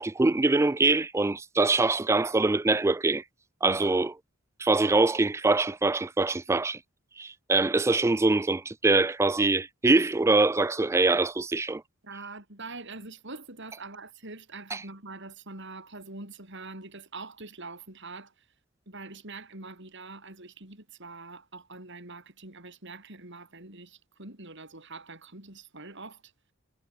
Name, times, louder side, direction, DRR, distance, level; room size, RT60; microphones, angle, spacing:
voice 1, 0.0-3.2 3.6-4.1 4.6-6.8 7.2-11.8 14.7-14.8, right 3 dB, 15° right, 0.3 m, -24 dB
voice 2, 12.0-18.4 18.9-26.3, right 3 dB, 60° right, 7.3 m, -44 dB
head